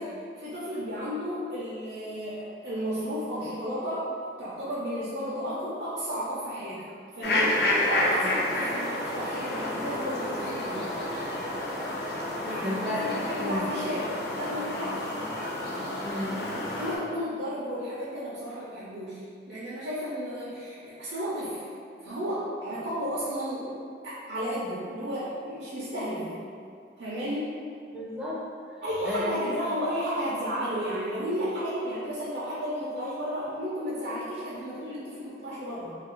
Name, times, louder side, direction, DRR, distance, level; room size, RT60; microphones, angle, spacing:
voice 1, 0.0-4.1 4.4-6.8 7.1-11.0 12.4-15.1 16.8-19.2 19.5-21.6 22.0-27.5 28.8-36.0, equal, 65° right, -9 dB, 0.5 m, -33 dB
sound 1, 7.2-17.0, left 1 dB, 60° left, 0.4 m, -30 dB
voice 2, 12.6-13.0 13.4-13.6 16.1-16.4 27.9-29.3, left 1 dB, 5° right, -7 dB, 0.5 m, -33 dB
2.7 x 2.4 x 3.0 m, 2.3 s
head